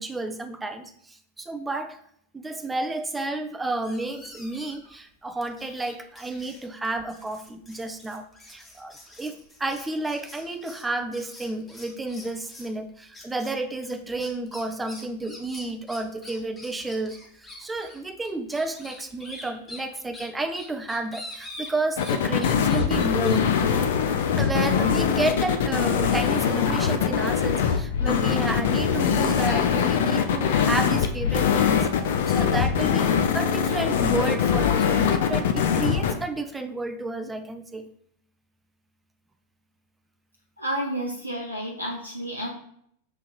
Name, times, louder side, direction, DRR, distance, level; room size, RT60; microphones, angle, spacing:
voice 1, 0.0-2.0 2.3-23.5 24.4-37.8, right 2 dB, 10° right, 8 dB, 0.4 m, -31 dB
sound 1, 3.8-4.9 5.4-12.8 13.1-13.5 13.8-22.2 22.4-23.4, left 1 dB, 10° left, 1.0 m, -45 dB
sound 2, 22.0-36.1, left 7 dB, 55° left, 0.4 m, -22 dB
voice 2, 40.6-42.5, right 1 dB, 90° right, -1 dB, 0.5 m, -30 dB
6.3 x 2.8 x 2.3 m, 0.68 s
figure-of-eight pair, 90°, 0 cm